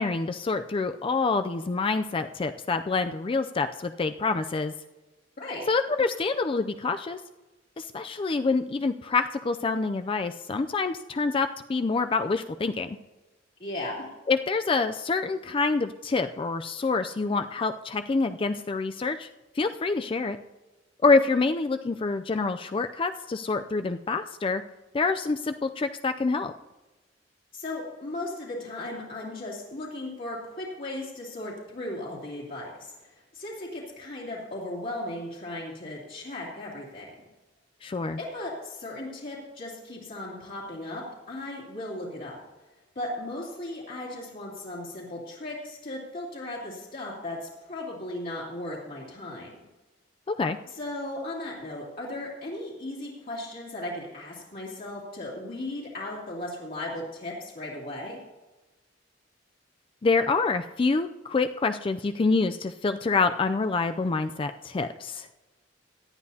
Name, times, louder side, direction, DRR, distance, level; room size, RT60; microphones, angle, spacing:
voice 1, 0.0-4.7 5.7-7.2 7.8-13.0 14.3-19.3 19.6-20.4 21.0-24.6 24.9-26.5 37.8-38.2 50.3-50.6 60.0-65.3, left 4 dB, 30° left, 9 dB, 0.4 m, -26 dB
voice 2, 13.6-14.1 27.5-37.1 38.2-42.4 42.9-49.6 50.7-58.2, left 1 dB, 50° left, -6 dB, 2.7 m, -36 dB
18.0 x 11.5 x 2.8 m, 1.1 s
head